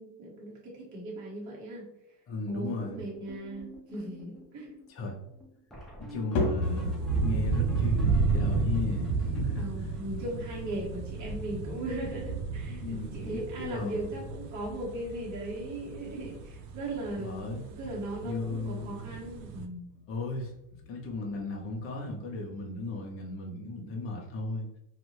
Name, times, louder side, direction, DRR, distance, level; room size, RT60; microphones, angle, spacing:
voice 1, 0.0-1.9 2.5-4.7 9.6-19.9, right 1 dB, 35° right, -4 dB, 1.3 m, -38 dB
voice 2, 2.3-3.0 4.9-5.1 6.1-9.7 12.7-14.2 17.1-17.6 18.2-18.9 20.1-20.5 20.8-24.7, left 2 dB, 25° left, 0 dB, 0.7 m, -36 dB
sound 1, 3.0-11.2 11.5-11.6 11.8-12.0 12.3-12.8 13.1-13.4 14.2-14.3 14.7-14.8 15.1-15.3 17.5-17.6 19.9-20.0, right 2 dB, ahead, 0.3 m, -48 dB
sound 2, 6.4-22.8, left 2 dB, 85° left, 1.0 m, -39 dB
sound 3, 6.6-19.7, right 4 dB, 85° right, 0.6 m, -33 dB
2.6 x 2.4 x 3.1 m, 0.78 s
supercardioid pair, 120°, 50 cm